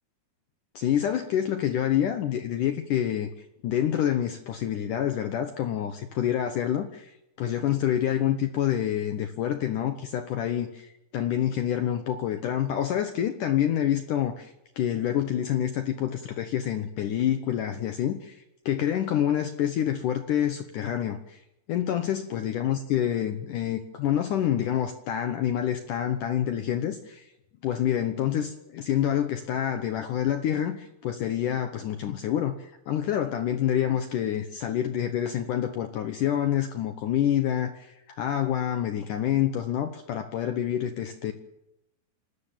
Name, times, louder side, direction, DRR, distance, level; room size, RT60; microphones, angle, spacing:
voice 1, 0.8-21.4 21.7-27.3 27.6-41.3, left 10 dB, 85° left, 8 dB, 1.8 m, -27 dB
26.5 x 13.5 x 9.0 m, 0.87 s
omnidirectional pair, 5.1 m